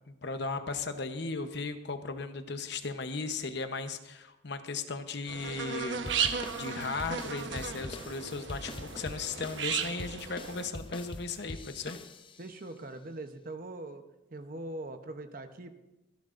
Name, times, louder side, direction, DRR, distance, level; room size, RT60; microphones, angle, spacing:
voice 1, 0.1-6.0 6.6-12.0, left 4 dB, 60° left, 8 dB, 0.9 m, -36 dB
sound 1, 5.3-10.7, right 6 dB, 70° right, 1.1 m, -35 dB
sound 2, 6.1-12.5, left 2 dB, 25° left, 0.6 m, -44 dB
voice 2, 12.4-14.0 14.3-15.7, right 2 dB, 45° right, 8 dB, 0.9 m, -42 dB
25.5 x 10.5 x 2.6 m, 0.96 s
head